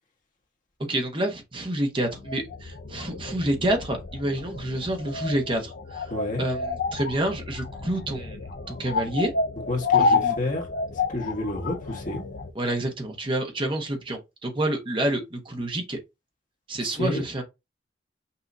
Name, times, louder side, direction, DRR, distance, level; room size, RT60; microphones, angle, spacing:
voice 1, 0.9-6.1 6.4-8.4 8.7-9.3 10.0-10.3 12.5-16.0 16.7-17.4, right 1 dB, 30° right, 1.1 m, -28 dB
sound 1, 2.1-12.5, left 4 dB, 60° left, 0.5 m, -30 dB
voice 2, 6.1-6.4 9.7-12.2 16.8-17.2, left 2 dB, 45° left, 1.4 m, -30 dB
5.6 x 2.8 x 2.7 m
head